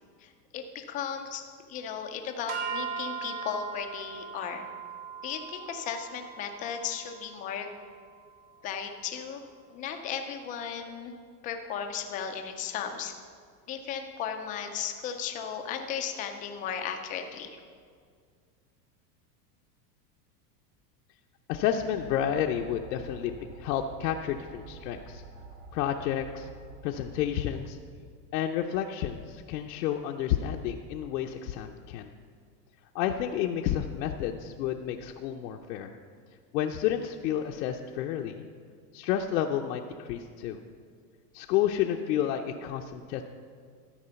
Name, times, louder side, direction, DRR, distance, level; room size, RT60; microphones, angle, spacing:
voice 1, 0.2-1.4 1.7-4.7 5.2-7.7 8.6-9.4 9.7-11.2 11.4-13.2 13.7-17.6, left 7 dB, 20° left, 5 dB, 0.3 m, -35 dB
sound 1, 2.5-8.8, right 6 dB, 65° right, 1.9 m, -40 dB
voice 2, 21.5-25.2 25.7-26.5 26.8-27.8 28.3-32.1 32.9-36.0 36.5-38.5 38.9-40.6 41.3-43.2, left 10 dB, 80° left, 2 dB, 0.7 m, -30 dB
sound 2, 21.8-27.6, right 2 dB, 85° right, 3.2 m, -48 dB
13.0 x 4.9 x 6.8 m, 2.1 s
supercardioid pair, 150°, 48 cm